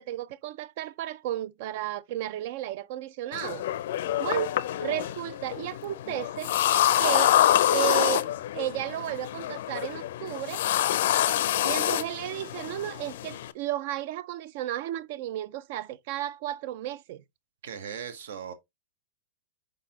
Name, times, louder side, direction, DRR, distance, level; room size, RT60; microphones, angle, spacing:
voice 1, 0.0-3.6 4.2-4.5 4.8-6.5 7.0-7.4 7.7-10.6 11.6-17.2, right 13 dB, 45° right, 0.3 m, -33 dB
sound 1, 3.3-13.5, left 12 dB, 60° left, 0.4 m, -26 dB
voice 2, 17.6-18.5, right 7 dB, 65° right, 0.8 m, -38 dB
4.8 x 3.9 x 2.8 m
supercardioid pair, 165°, 0 cm